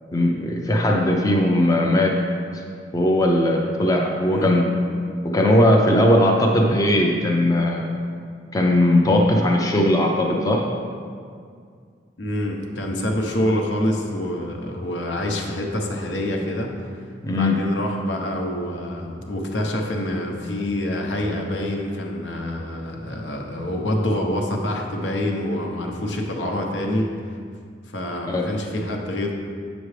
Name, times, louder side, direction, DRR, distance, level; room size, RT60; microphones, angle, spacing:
voice 1, 0.1-2.1 2.9-4.6 5.2-7.8 8.5-10.6 17.2-17.6 28.3-28.5, left 1 dB, 20° left, 0 dB, 0.5 m, -18 dB
voice 2, 4.2-4.6 12.2-16.7 17.3-27.1 27.9-29.3, left 1 dB, 75° left, 1 dB, 0.9 m, -26 dB
8.1 x 6.2 x 3.2 m, 2.1 s
head